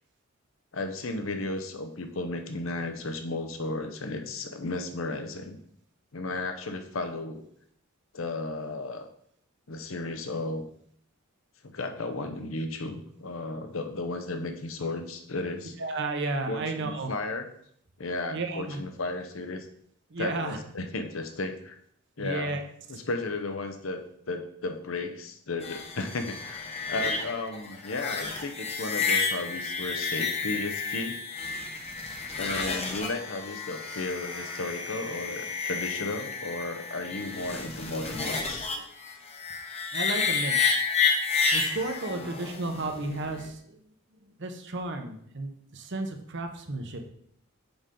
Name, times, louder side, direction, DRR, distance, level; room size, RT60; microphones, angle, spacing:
voice 1, 0.7-5.6 6.1-7.5 8.1-9.1 9.7-10.7 11.6-15.7 16.5-17.5 18.0-19.7 20.2-21.8 22.2-22.6 22.9-24.0 24.3-31.2 32.4-38.7 42.1-42.3, left 2 dB, 70° left, 6 dB, 0.8 m, -34 dB
voice 2, 15.8-17.1 18.3-18.8 20.1-20.6 22.2-22.6 39.9-40.8 41.5-43.6 44.4-47.1, right 2 dB, 60° right, 5 dB, 0.9 m, -33 dB
sound 1, 25.6-43.5, left 5 dB, 30° left, 1.0 m, -31 dB
7.0 x 5.3 x 3.8 m, 0.66 s
head